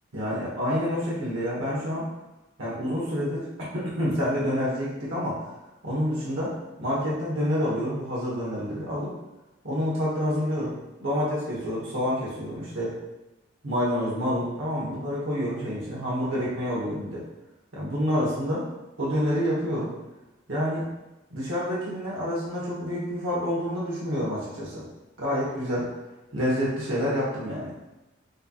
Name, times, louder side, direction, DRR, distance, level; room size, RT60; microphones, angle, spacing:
voice 1, 0.1-2.1 2.6-3.5 3.7-5.4 5.8-6.5 6.8-9.1 9.6-12.9 13.6-17.2 17.7-18.7 19.0-19.9 20.5-20.9 21.3-24.8 25.2-25.9 26.3-27.7, equal, 80° right, -6 dB, 1.2 m, -28 dB
6.4 x 2.9 x 2.3 m, 1.0 s
head